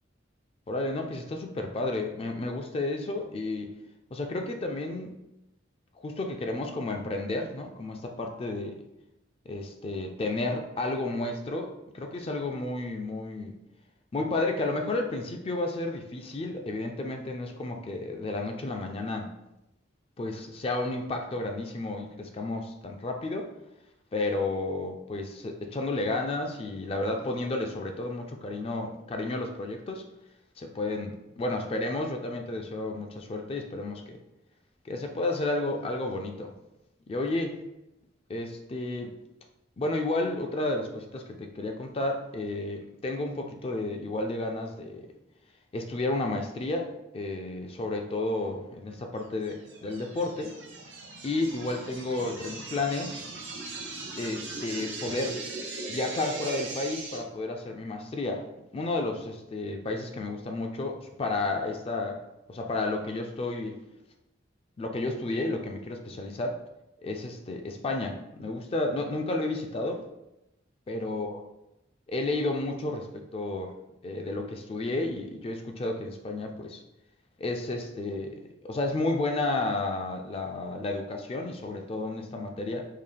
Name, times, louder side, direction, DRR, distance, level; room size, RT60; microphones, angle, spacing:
voice 1, 0.7-3.7 4.1-5.2 6.0-8.8 9.5-13.5 14.1-19.3 20.2-23.5 24.1-30.1 30.6-34.2 34.8-36.5 37.1-37.5 38.3-39.2 39.8-45.1 45.7-50.5 51.2-53.2 54.2-55.4 55.9-58.4 58.7-62.2 62.5-63.8 64.8-66.6 67.0-70.0 70.9-71.4 72.1-73.8 74.0-76.8 77.4-82.9, left 2 dB, 30° left, 3 dB, 0.3 m, -32 dB
sound 1, 49.4-57.2, right 3 dB, 70° right, 0.7 m, -39 dB
3.8 x 2.3 x 3.3 m, 0.91 s
head